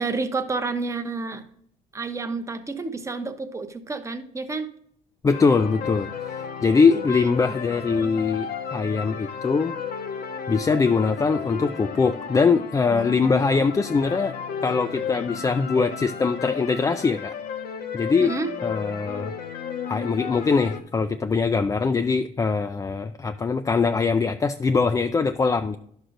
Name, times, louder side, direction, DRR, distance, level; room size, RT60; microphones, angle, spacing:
voice 1, 0.0-1.4 1.9-4.7 7.1-7.6 7.9-8.1 18.2-18.5, right 3 dB, 15° right, 8 dB, 0.8 m, -30 dB
voice 2, 5.2-9.7 10.5-14.3 14.6-17.3 17.9-18.3 18.6-19.3 19.9-25.8, left 4 dB, 20° left, 8 dB, 0.3 m, -22 dB
sound 1, 5.3-20.8, left 7 dB, 65° left, 0.8 m, -33 dB
11.0 x 6.3 x 2.6 m, 0.65 s
cardioid pair, 110°, 17 cm